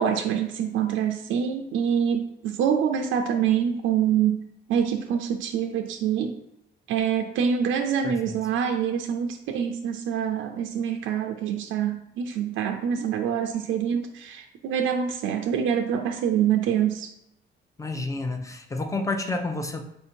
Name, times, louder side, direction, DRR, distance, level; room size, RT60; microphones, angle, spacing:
voice 1, 0.0-4.4 4.7-6.4 6.9-17.1, right 8 dB, 85° right, 4 dB, 0.4 m, -25 dB
voice 2, 8.0-8.4 17.8-19.8, left 2 dB, 15° left, 6 dB, 0.6 m, -30 dB
4.4 x 2.6 x 4.4 m, 0.82 s
cardioid pair, 90°, 20 cm